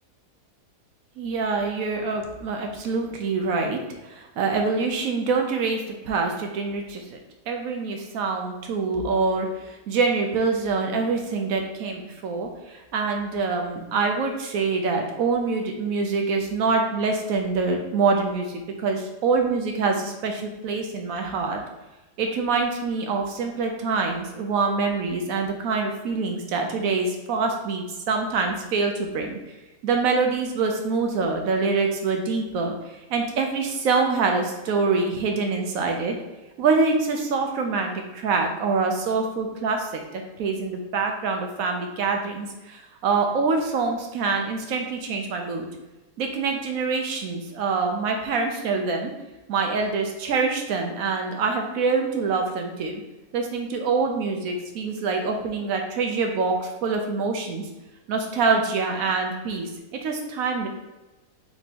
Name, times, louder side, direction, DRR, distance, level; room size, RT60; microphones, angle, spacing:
voice 1, 1.2-7.2 7.5-21.6 22.2-29.4 29.8-32.7 33.1-36.1 36.6-45.7 46.2-49.1 49.5-53.0 53.3-57.7 58.1-59.7 60.0-60.7, right 4 dB, 70° right, 3 dB, 0.9 m, -25 dB
3.4 x 3.0 x 4.1 m, 1.1 s
omnidirectional pair, 1.7 m